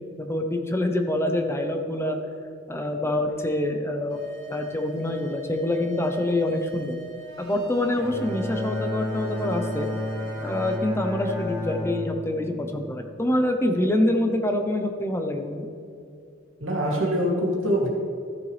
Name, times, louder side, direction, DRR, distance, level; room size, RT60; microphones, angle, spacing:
voice 1, 0.2-2.2 2.7-4.2 4.5-7.0 7.4-9.9 10.4-15.7, left 1 dB, 15° left, 5 dB, 0.7 m, -26 dB
sound 1, 4.1-10.8, right 4 dB, 55° right, 2.0 m, -42 dB
Bowed string instrument, 7.9-13.4, left 2 dB, 15° right, 1.8 m, -31 dB
voice 2, 16.6-17.9, equal, 90° right, -2 dB, 2.5 m, -24 dB
14.0 x 6.9 x 3.4 m, 2.5 s
head